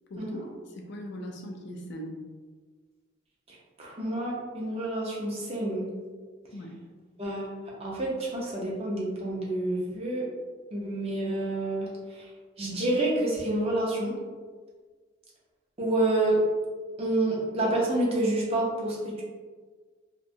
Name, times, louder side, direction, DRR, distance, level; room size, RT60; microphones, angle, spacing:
voice 1, 0.1-2.2 6.5-6.8, equal, 55° left, 2 dB, 0.4 m, -40 dB
voice 2, 3.5-5.9 7.2-7.5 7.8-10.2 10.7-12.3 12.6-14.1 15.8-16.4 17.0-19.2, right 1 dB, 30° right, -4 dB, 0.6 m, -28 dB
2.6 x 2.2 x 2.6 m, 1.5 s
head